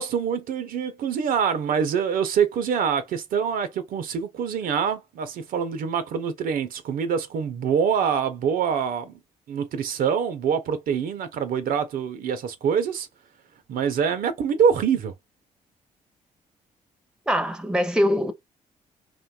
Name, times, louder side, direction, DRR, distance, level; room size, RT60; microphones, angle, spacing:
voice 1, 0.0-9.2 9.5-13.1 13.7-15.1, right 7 dB, 65° right, 0.5 m, -25 dB
voice 2, 17.3-18.3, equal, 5° right, 0.6 m, -22 dB
2.5 x 2.2 x 2.2 m
hypercardioid pair, 50°, 16 cm